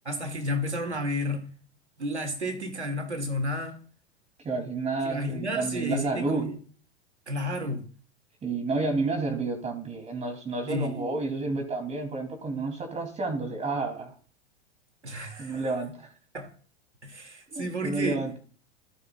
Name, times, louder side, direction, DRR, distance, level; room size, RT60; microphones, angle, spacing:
voice 1, 0.0-1.5 2.0-3.8 5.0-6.5 7.3-7.8 10.7-11.0 15.0-15.6 16.3-16.5 17.0-18.2, left 1 dB, 85° right, 2.7 m, -31 dB
voice 2, 4.4-6.5 8.4-14.1 15.4-16.1 17.5-18.4, right 3 dB, 20° right, 3.5 m, -30 dB
27.0 x 9.8 x 2.6 m
figure-of-eight pair, 90°, 33 cm